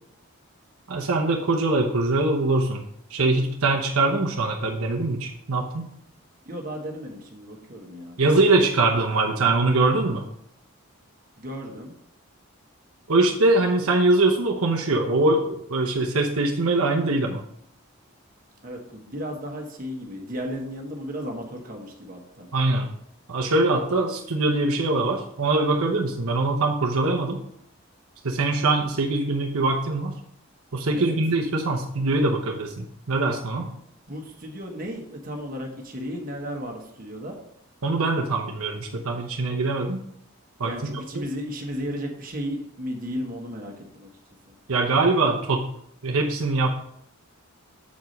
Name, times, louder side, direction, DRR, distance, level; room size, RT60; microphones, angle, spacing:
voice 1, 0.9-2.8 3.1-5.9 8.2-10.3 13.1-17.4 22.5-22.9 23.3-27.4 28.2-30.1 30.7-33.7 37.8-40.0 40.6-41.2 44.7-45.7 46.0-46.7, right 2 dB, 75° right, 0 dB, 0.8 m, -23 dB
voice 2, 6.4-8.2 11.4-11.9 18.6-22.5 30.9-31.2 34.1-37.4 40.6-44.1 44.5-44.6, equal, 40° right, 1 dB, 1.3 m, -34 dB
7.2 x 4.8 x 5.2 m, 0.72 s
head